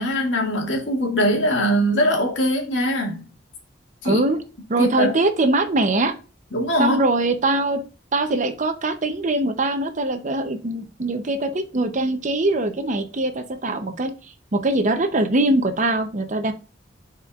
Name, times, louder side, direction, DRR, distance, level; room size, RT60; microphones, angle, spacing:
voice 1, 0.0-3.3 4.0-4.2 4.8-5.1 6.5-7.0, equal, 80° left, 1.9 m, -21 dB
voice 2, 4.0-4.4 4.7-6.1 6.8-7.8 8.1-14.1 14.5-16.5, right 2 dB, 40° right, 0.7 m, -22 dB
10.5 x 4.4 x 2.4 m
head